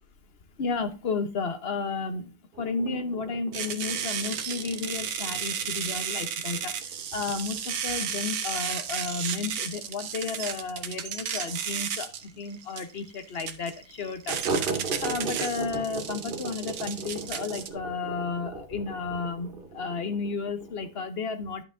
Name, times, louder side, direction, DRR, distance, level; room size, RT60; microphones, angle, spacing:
voice 1, 0.6-14.4 15.0-21.6, left 4 dB, 45° left, 1.0 m, -33 dB
sound 1, 2.5-11.8 12.1-12.2 12.5-12.6 13.0-13.1 14.3-21.0, right 3 dB, 40° right, 0.9 m, -38 dB
sound 2, 3.5-17.7, right 8 dB, 70° right, 1.3 m, -33 dB
11.0 x 6.3 x 2.6 m
omnidirectional pair, 1.7 m